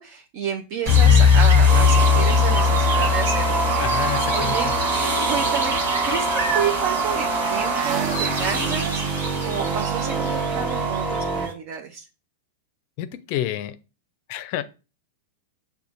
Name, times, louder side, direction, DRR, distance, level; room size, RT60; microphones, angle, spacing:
voice 1, 0.0-5.8 6.0-12.0, right 7 dB, 50° right, 1 dB, 0.6 m, -30 dB
sound 1, 0.8-11.5, right 2 dB, 75° right, 1.3 m, -29 dB
sound 2, 0.9-5.2, left 6 dB, 5° right, 1.1 m, -18 dB
sound 3, 1.7-11.5, right 4 dB, 30° right, 0.9 m, -25 dB
voice 2, 3.8-4.7 13.0-13.8 14.3-14.6, left 13 dB, 50° left, 13 dB, 0.4 m, -29 dB
6.9 x 2.3 x 2.6 m, 0.32 s
hypercardioid pair, 105°, 0 cm